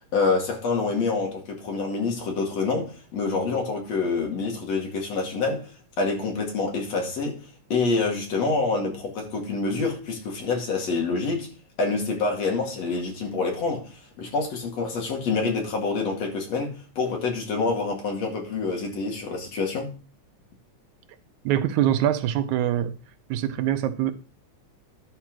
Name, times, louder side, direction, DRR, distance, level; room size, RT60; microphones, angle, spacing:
voice 1, 0.1-5.7 6.0-7.4 7.7-11.5 11.8-19.9, left 4 dB, 60° left, 3.3 m, -27 dB
voice 2, 21.5-22.9 23.3-24.1, right 11 dB, 80° right, 2.1 m, -24 dB
11.5 x 4.6 x 6.0 m
omnidirectional pair, 3.4 m